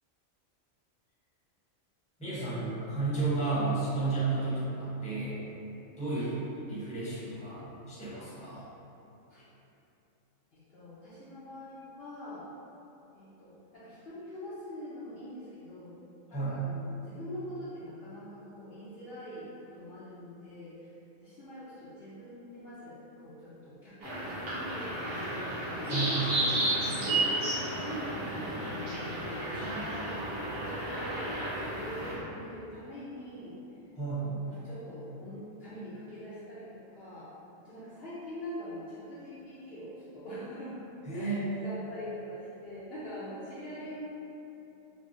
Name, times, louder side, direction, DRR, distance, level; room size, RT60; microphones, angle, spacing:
voice 1, 2.2-5.4 6.0-6.3 6.6-8.6 16.3-16.6 25.9-26.1 33.9-34.3 41.1-41.7, right 3 dB, 5° left, -11 dB, 0.8 m, -32 dB
voice 2, 10.5-12.5 13.1-16.0 16.3-20.9 21.2-25.5 25.8-31.3 31.6-33.6 34.2-37.3 37.6-40.8 41.1-44.2, equal, 55° left, -11 dB, 0.8 m, -43 dB
sound 1, 24.0-32.2, right 1 dB, 50° right, 1.1 m, -32 dB
4.7 x 2.1 x 2.6 m, 2.9 s
omnidirectional pair, 1.3 m